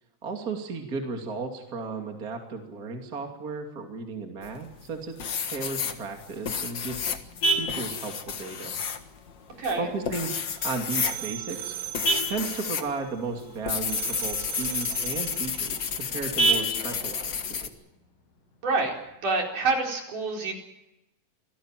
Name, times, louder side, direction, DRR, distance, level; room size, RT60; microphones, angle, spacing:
voice 1, 0.2-5.2 5.4-7.1 7.5-8.8 9.8-10.3 10.6-11.8 12.3-17.7, right 4 dB, 30° right, 3 dB, 2.8 m, -34 dB
sound 1, 4.4-4.9 5.2-12.9 13.2-17.7, left 7 dB, 50° left, 1.4 m, -31 dB
Vehicle horn car horn honking, 6.1-19.1, right 2 dB, 85° left, 7.6 m, -34 dB
voice 2, 9.6-9.9 18.6-18.9 19.2-20.5, right 3 dB, 65° right, 1 dB, 5.9 m, -27 dB
sound 2, 10.5-13.6 13.9-15.8, right 12 dB, 90° right, 4.2 m, -38 dB
26.5 x 18.0 x 7.6 m, 0.91 s
omnidirectional pair, 4.0 m